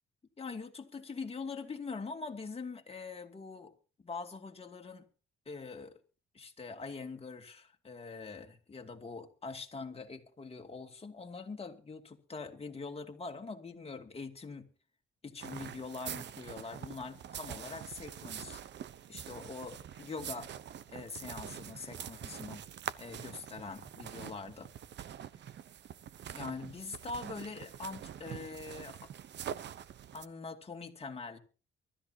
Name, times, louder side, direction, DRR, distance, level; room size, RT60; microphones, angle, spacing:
voice 1, 0.4-3.7 4.0-5.1 5.5-6.0 6.3-14.7 15.2-18.6 19.1-20.5 20.9-22.7 23.0-24.7 26.3-29.1 30.1-31.4, left 4 dB, 30° left, 2.5 m, -43 dB
sound 1, 15.4-30.3, right 9 dB, 60° right, 0.9 m, -45 dB
23.5 x 13.0 x 2.9 m
cardioid pair, 90°, 20 cm